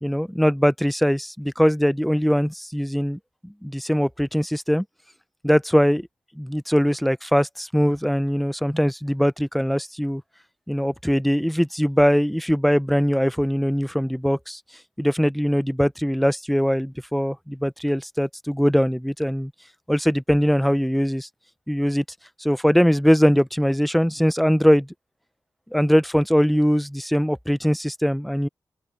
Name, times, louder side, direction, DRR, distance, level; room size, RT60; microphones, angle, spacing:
voice 1, 0.0-4.8 5.4-6.1 6.4-10.2 10.7-14.6 15.0-19.5 19.9-21.3 21.7-22.0 22.4-24.9 25.7-28.5, equal, ahead, 0.6 m, -21 dB
open air
wide cardioid pair, 150°, 8 cm